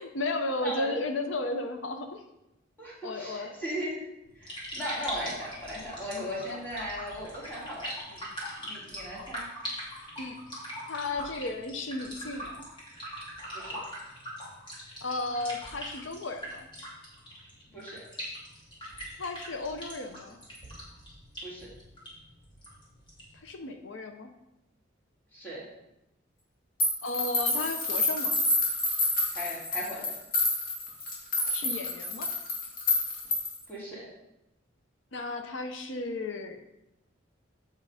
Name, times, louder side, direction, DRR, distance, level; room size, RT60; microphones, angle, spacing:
voice 1, 0.0-2.2 3.0-3.6 6.5-6.6 10.2-10.4 10.9-12.6 15.0-16.7 19.2-20.4 23.3-24.3 27.0-28.4 31.4-32.3 35.1-36.6, left 2 dB, 70° left, 6 dB, 0.8 m, -34 dB
voice 2, 0.6-1.0 2.8-4.0 4.4-8.2 8.6-9.5 13.5-13.8 17.7-18.0 21.4-21.7 25.3-25.6 29.3-30.1 33.7-34.0, equal, 10° left, -7 dB, 2.8 m, -37 dB
sound 1, 4.2-23.4, equal, 25° left, 2.5 m, -42 dB
sound 2, 26.8-33.6, left 2 dB, 50° left, 2.1 m, -28 dB
7.6 x 5.5 x 4.9 m, 0.90 s
head